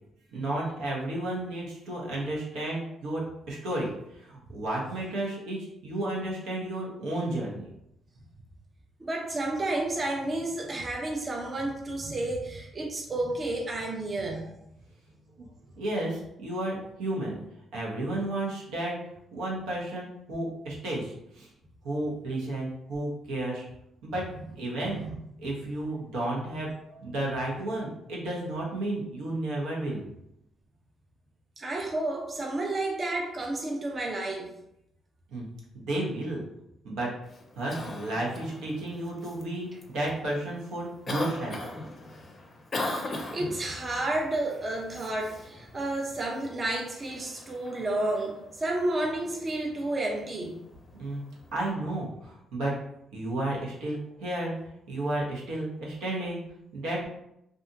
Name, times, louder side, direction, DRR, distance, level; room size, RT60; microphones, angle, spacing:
voice 1, 0.3-7.7 15.4-15.5 15.8-17.4 17.7-19.0 19.3-21.5 21.8-23.7 24.0-24.2 24.6-25.0 25.4-30.0 35.3-35.5 35.7-36.4 36.8-37.1 37.5-41.6 51.0-51.2 51.5-52.7 53.1-54.5 54.9-56.4 56.7-57.1, right 1 dB, 90° right, -4 dB, 0.8 m, -32 dB
voice 2, 9.0-14.4 24.9-25.2 31.6-34.5 43.3-50.6, right 2 dB, 35° right, 0 dB, 0.5 m, -31 dB
Cough, 37.2-51.7, left 2 dB, 35° left, 0.5 m, -41 dB
2.6 x 2.4 x 2.5 m, 0.80 s
cardioid pair, 90°, 0 cm